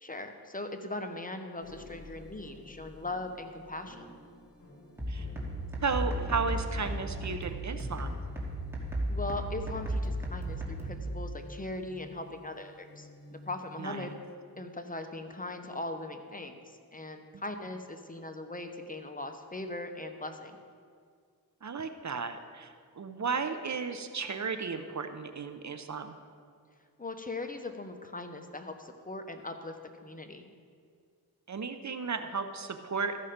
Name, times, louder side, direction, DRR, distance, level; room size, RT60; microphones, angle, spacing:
voice 1, 0.0-4.1 9.1-14.1 14.6-20.6 27.0-29.8 30.0-30.5, left 2 dB, 20° left, 6 dB, 0.8 m, -40 dB
sound 1, 1.6-14.1, left 1 dB, 50° left, 2.2 m, -51 dB
sound 2, 5.0-11.0, right 1 dB, 5° right, 2.2 m, -35 dB
voice 2, 5.8-8.2 13.8-14.1 21.6-26.2 31.5-33.2, right 5 dB, 45° right, 8 dB, 0.7 m, -34 dB
14.0 x 5.6 x 5.1 m, 2.1 s
cardioid pair, 65°, 38 cm